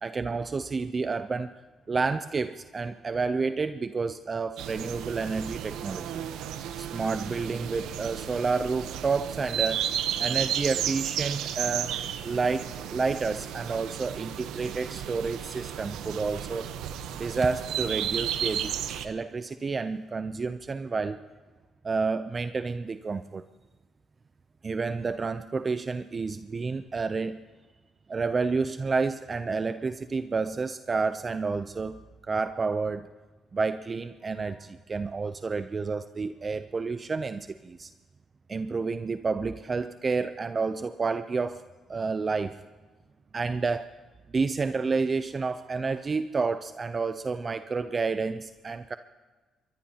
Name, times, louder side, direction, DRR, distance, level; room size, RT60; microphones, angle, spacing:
voice 1, 0.0-1.5 1.9-6.2 6.8-9.9 10.2-12.0 12.2-16.7 17.2-18.7 19.0-21.2 21.8-23.4 24.6-27.4 28.1-33.1 33.5-37.9 38.5-41.6 41.9-42.6 43.3-43.9 44.3-49.0, right 4 dB, 35° right, 11 dB, 0.5 m, -30 dB
sound 1, 4.6-19.1, right 10 dB, 90° right, 0.9 m, -33 dB
22.5 x 20.5 x 2.9 m, 1.3 s
cardioid pair, 90°, 0 cm